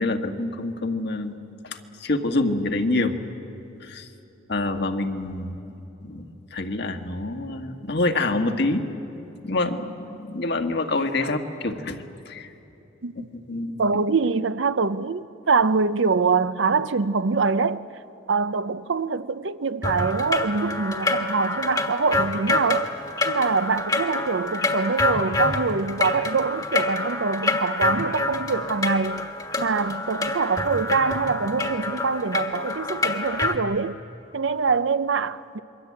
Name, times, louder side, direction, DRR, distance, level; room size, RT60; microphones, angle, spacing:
voice 1, 0.0-1.4 1.6-3.2 3.8-4.1 4.5-5.6 6.0-8.8 9.4-12.5 13.2-14.0, left 2 dB, 55° left, 1.6 m, -27 dB
voice 2, 13.8-17.9 18.3-22.9 23.2-29.3 29.6-34.0 34.3-35.6, right 4 dB, 65° right, 0.6 m, -24 dB
sound 1, 19.8-33.6, left 2 dB, 20° left, 1.5 m, -27 dB
27.5 x 23.0 x 8.6 m
head